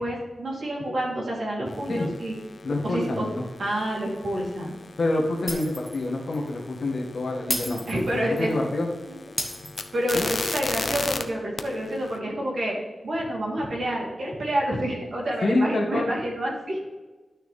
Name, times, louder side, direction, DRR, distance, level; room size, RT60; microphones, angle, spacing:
voice 1, 0.0-2.3 2.8-3.3 3.6-4.8 7.9-8.5 9.1-9.2 9.9-12.8 13.0-16.8, right 1 dB, 60° right, -3 dB, 3.0 m, -28 dB
sound 1, 1.7-11.2 11.6-12.2, left 3 dB, 40° left, 0.6 m, -37 dB
voice 2, 2.6-3.4 5.0-7.8 8.3-8.9 10.1-10.3 15.4-16.1, left 2 dB, 55° left, 1 dB, 1.7 m, -26 dB
Shatter, 5.5-6.0 6.3-6.5 7.5-8.5 9.4-10.4, equal, ahead, 1.1 m, -32 dB
12.0 x 6.5 x 3.3 m, 1.2 s
wide cardioid pair, 180°, 0 cm